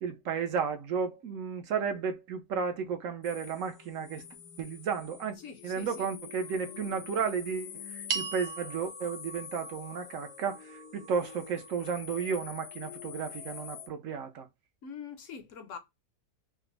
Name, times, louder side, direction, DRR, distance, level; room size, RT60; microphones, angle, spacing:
voice 1, 0.0-4.2 4.6-5.3 5.6-14.5, right 6 dB, 60° right, 1.1 m, -33 dB
sound 1, 3.2-13.9, left 8 dB, 90° left, 1.2 m, -46 dB
voice 2, 5.4-6.1 14.8-15.8, left 6 dB, 60° left, 1.0 m, -44 dB
sound 2, 8.1-12.6, right 7 dB, 85° right, 1.3 m, -41 dB
4.9 x 2.1 x 3.2 m
omnidirectional pair, 1.6 m